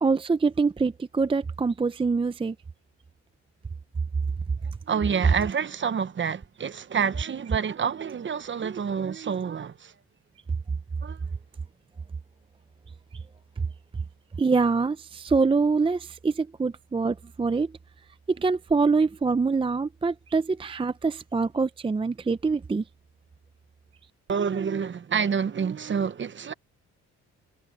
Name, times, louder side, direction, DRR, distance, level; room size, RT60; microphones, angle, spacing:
voice 1, 0.0-2.5 14.4-17.7 18.3-22.8, right 4 dB, 20° right, 0.5 m, -25 dB
voice 2, 4.9-9.9 11.0-11.2 24.3-26.5, right 6 dB, 40° right, 1.1 m, -28 dB
cardioid pair, 90°, 30 cm